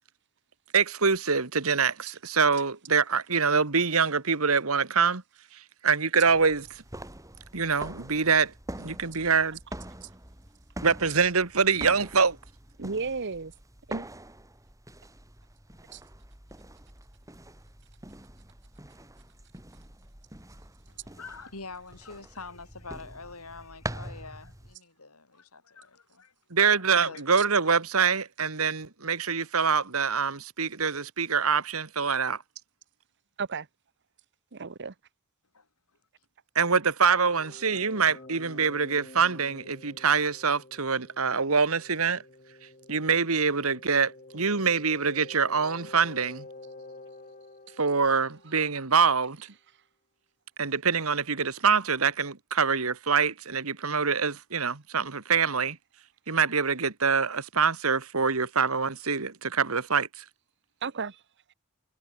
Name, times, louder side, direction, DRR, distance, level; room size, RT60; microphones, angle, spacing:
voice 1, 0.7-5.2 5.8-6.8 7.5-8.5 8.8-9.6 10.8-12.4 26.5-32.4 36.5-42.2 42.9-46.4 47.8-49.5 50.6-55.8 56.3-60.2, right 5 dB, 75° right, 1.7 m, -25 dB
sound 1, 6.3-24.8, right 1 dB, 15° right, 3.3 m, -44 dB
voice 2, 12.8-13.5 13.9-14.1 15.9-16.0 33.4-33.7 34.5-34.9 60.8-61.2, right 4 dB, 55° right, 1.0 m, -33 dB
voice 3, 20.9-26.3 26.7-27.2 35.5-35.7 38.0-38.5, left 4 dB, 85° left, 7.3 m, -45 dB
sound 2, 37.4-49.0, left 2 dB, 35° left, 4.1 m, -49 dB
head